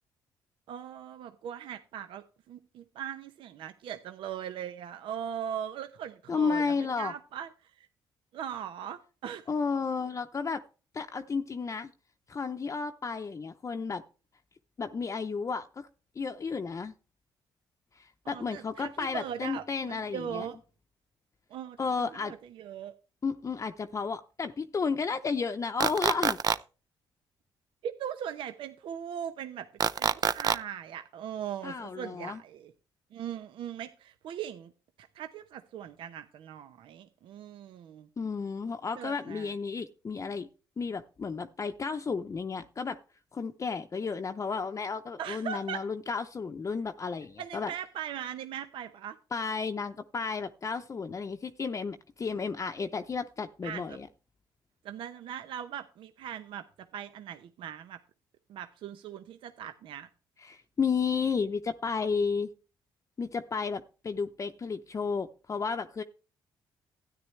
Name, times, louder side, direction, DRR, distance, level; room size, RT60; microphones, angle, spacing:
voice 1, 0.7-7.9 8.3-9.5 18.2-20.6 21.5-22.9 27.8-29.7 30.0-32.7 33.1-34.7 35.0-38.1 39.0-39.5 45.2-45.8 47.4-49.2 53.6-54.0 54.8-58.0 58.5-60.1, right 9 dB, 75° right, 0.8 m, -40 dB
voice 2, 6.3-7.1 9.5-10.6 10.9-11.9 12.3-14.0 14.8-15.9 16.2-16.9 18.0-20.5 21.8-22.3 23.2-26.4 31.6-32.4 38.2-40.5 40.8-43.0 43.3-47.7 49.3-54.1 60.4-62.5 63.2-66.0, left 5 dB, 35° left, 0.7 m, -32 dB
sound 1, 25.8-26.6 29.8-30.6, right 7 dB, 45° right, 0.6 m, -25 dB
13.0 x 9.9 x 3.2 m
cardioid pair, 75°, 9 cm